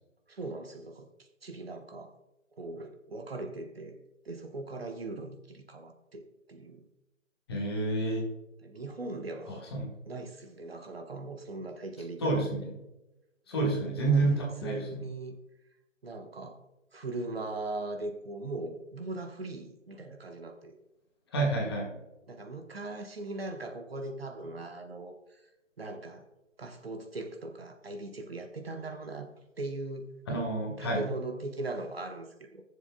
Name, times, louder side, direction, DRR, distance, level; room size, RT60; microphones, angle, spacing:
voice 1, 0.3-2.1 2.6-4.0 4.2-6.2 6.5-6.8 8.6-9.6 10.1-12.5 13.5-15.4 16.0-16.6 16.9-20.8 22.3-25.4 25.8-26.2 26.6-29.3 29.6-30.1 30.8-32.6, right 2 dB, 50° right, 5 dB, 1.1 m, -39 dB
voice 2, 7.5-8.3 9.5-9.9 12.2-12.7 13.5-15.0 21.3-21.9 30.3-31.0, right 2 dB, 20° left, -1 dB, 1.3 m, -29 dB
19.0 x 7.1 x 2.2 m, 0.96 s
figure-of-eight pair, 150°, 38 cm